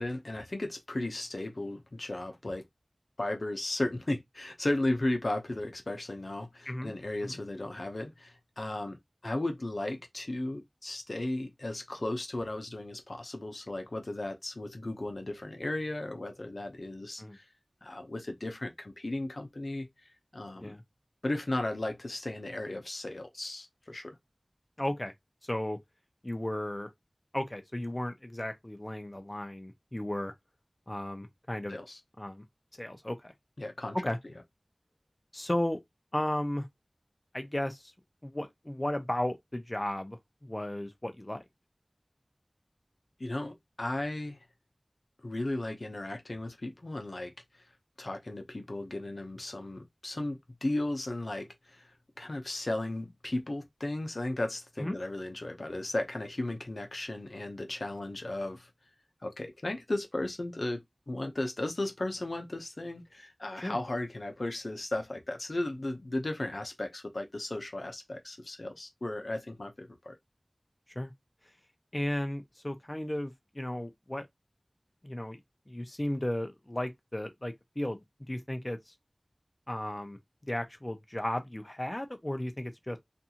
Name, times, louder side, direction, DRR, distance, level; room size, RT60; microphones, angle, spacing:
voice 1, 0.0-2.6 3.2-9.0 9.2-17.4 17.8-19.9 20.3-20.7 21.2-24.2 31.7-32.0 33.6-34.0 43.2-44.4 45.2-47.3 48.0-51.9 52.2-58.7 59.2-60.8 61.1-70.2, left 1 dB, 75° left, 0.6 m, -35 dB
voice 2, 24.8-25.1 25.4-25.8 26.2-26.9 27.3-30.3 30.9-31.8 32.2-32.4 32.7-33.3 34.0-34.2 35.3-35.8 36.1-36.7 37.3-37.9 38.2-41.4 54.8-55.0 63.6-63.8 70.9-71.1 71.9-74.3 75.0-75.4 75.7-78.0 78.3-78.9 79.7-80.2 80.5-83.0, left 1 dB, 30° left, 0.5 m, -34 dB
2.5 x 2.3 x 2.8 m
wide cardioid pair, 45°, 0 cm